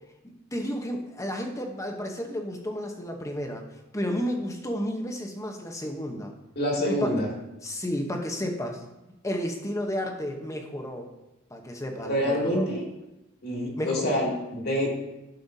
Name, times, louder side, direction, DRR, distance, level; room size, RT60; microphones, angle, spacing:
voice 1, 0.5-3.6 3.9-6.3 6.8-7.1 7.6-8.8 9.2-11.0 11.5-12.7 13.8-14.0, equal, 15° left, 3 dB, 0.9 m, -32 dB
voice 2, 6.6-7.3 12.0-12.9 13.4-14.9, equal, 50° left, -2 dB, 2.1 m, -26 dB
11.5 x 5.6 x 2.7 m, 0.95 s
head